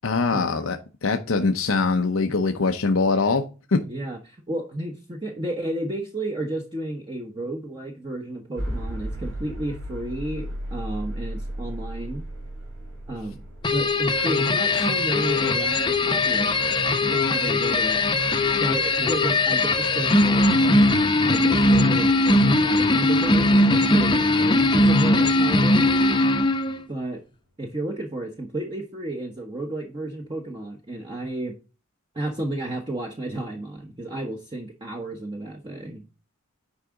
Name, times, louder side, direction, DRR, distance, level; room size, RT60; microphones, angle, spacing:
voice 1, 0.0-3.4 3.7-3.8, left 4 dB, 85° left, 0.8 m, -22 dB
voice 2, 3.9-12.2 13.1-13.4 13.7-18.0 18.6-20.7 21.3-26.2 26.9-27.2 27.6-31.5 32.1-36.0, right 1 dB, 25° right, 1.0 m, -32 dB
sound 1, 8.6-24.5, equal, 85° right, 3.3 m, -38 dB
sound 2, 13.6-26.8, left 2 dB, 25° left, 0.7 m, -20 dB
9.8 x 4.8 x 3.7 m
head